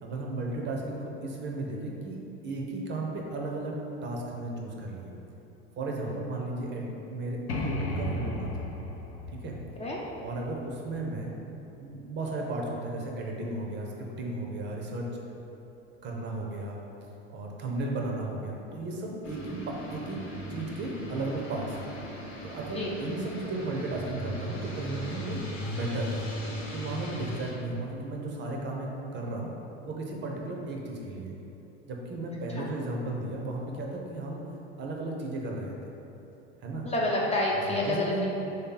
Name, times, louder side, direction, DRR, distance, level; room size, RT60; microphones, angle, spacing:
voice 1, 0.0-2.2 2.4-3.8 4.0-5.1 5.8-8.7 9.3-9.6 10.2-11.3 11.8-15.2 16.0-16.8 17.3-20.2 20.5-21.9 22.4-26.2 26.7-29.5 29.9-31.3 31.9-34.4 34.8-35.9 36.6-36.9 37.7-38.2, right 2 dB, 35° right, -1 dB, 0.6 m, -34 dB
sound 1, 7.5-11.1, left 1 dB, 85° left, 0.6 m, -35 dB
sound 2, 19.2-27.5, equal, 40° left, 0.9 m, -38 dB
voice 2, 36.8-38.3, left 1 dB, 20° left, -4 dB, 0.4 m, -28 dB
3.3 x 2.8 x 3.8 m, 3.0 s
hypercardioid pair, 95°, 32 cm